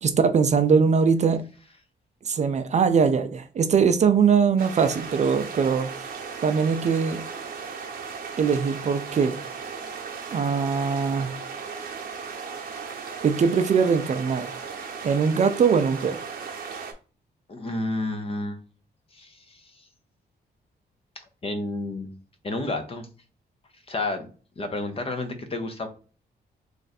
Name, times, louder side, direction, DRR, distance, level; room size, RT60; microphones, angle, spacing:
voice 1, 0.0-1.4 2.3-6.1 6.4-7.2 8.4-9.4 10.3-11.3 13.2-14.5 15.0-16.2, right 6 dB, 40° right, 0.4 m, -21 dB
sound 1, 4.6-16.9, right 5 dB, 55° right, 0.8 m, -36 dB
voice 2, 17.5-18.6 19.1-19.6 21.4-22.1 22.4-23.1 23.9-24.3 24.6-25.9, left 2 dB, 35° left, 0.6 m, -30 dB
3.2 x 2.5 x 4.1 m
wide cardioid pair, 135°, 18 cm